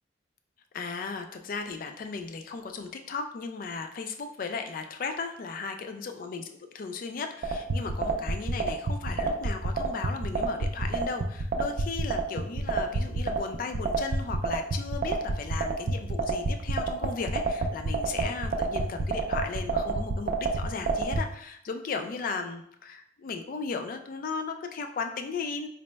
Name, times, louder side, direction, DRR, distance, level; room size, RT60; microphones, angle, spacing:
voice 1, 0.7-6.5 6.7-25.7, left 4 dB, 50° left, 6 dB, 0.4 m, -36 dB
sound 1, 7.4-21.2, right 3 dB, 50° right, 0.4 m, -27 dB
3.9 x 2.1 x 3.2 m, 0.71 s
head